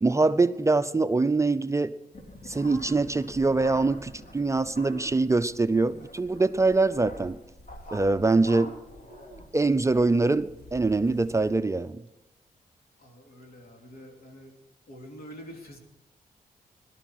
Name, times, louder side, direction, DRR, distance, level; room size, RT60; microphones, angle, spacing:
voice 1, 0.0-1.9 2.5-7.4 7.9-8.7 9.5-12.0, right 3 dB, 20° right, 12 dB, 0.5 m, -24 dB
sound 1, 2.1-11.6, equal, 55° left, 3.4 m, -46 dB
voice 2, 13.0-14.6 14.9-15.8, equal, 75° left, 2 dB, 3.0 m, -46 dB
17.5 x 12.0 x 4.7 m, 0.90 s
wide cardioid pair, 110°, 15 cm